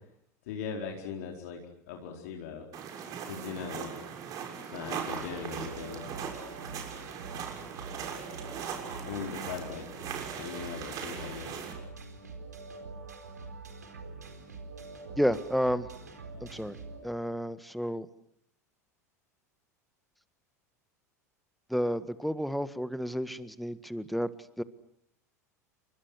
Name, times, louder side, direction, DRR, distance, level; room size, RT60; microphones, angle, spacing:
voice 1, 0.5-1.6 1.9-2.6 3.3-3.9 4.7-6.1 9.0-9.9 10.4-11.7, left 6 dB, 60° left, 2 dB, 4.4 m, -39 dB
sound 1, 2.7-11.7, right 7 dB, 40° right, 6.4 m, -39 dB
sound 2, 5.1-17.0, right 3 dB, 80° right, 4.4 m, -45 dB
voice 2, 15.2-15.9 16.4-16.8 17.0-18.1 21.7-24.3 24.6-24.7, equal, ahead, 14 dB, 1.6 m, -31 dB
29.5 x 25.0 x 6.3 m, 0.68 s
figure-of-eight pair, 80°, 9 cm